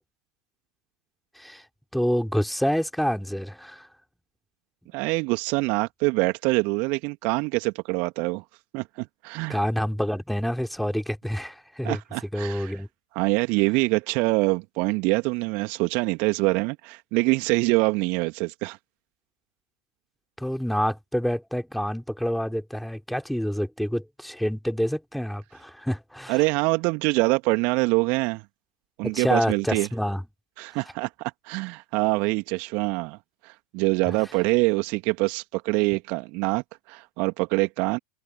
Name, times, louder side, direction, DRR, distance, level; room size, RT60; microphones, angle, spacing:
voice 1, 1.9-3.9 9.5-12.0 12.3-12.9 20.4-26.4 29.0-30.2, equal, ahead, 3.8 m, -27 dB
voice 2, 4.9-8.4 8.7-9.6 11.8-12.8 13.1-18.8 26.3-28.4 29.0-29.9 30.6-33.2 33.4-38.0, right 28 dB, 50° right, 2.3 m, -25 dB
figure-of-eight pair, 85°, 4 cm